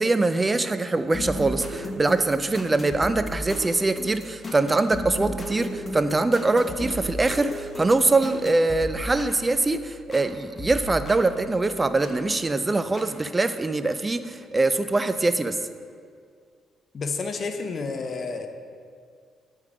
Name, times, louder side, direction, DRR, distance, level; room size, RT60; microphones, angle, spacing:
voice 1, 0.0-15.6, right 2 dB, 20° right, 11 dB, 0.3 m, -23 dB
sound 1, 1.1-10.3 10.6-12.2 12.9-13.0, equal, 30° left, 1.0 m, -35 dB
voice 2, 16.9-18.5, left 4 dB, 45° left, 6 dB, 0.6 m, -30 dB
8.1 x 3.6 x 4.8 m, 2.1 s
cardioid pair, 90°, 0 cm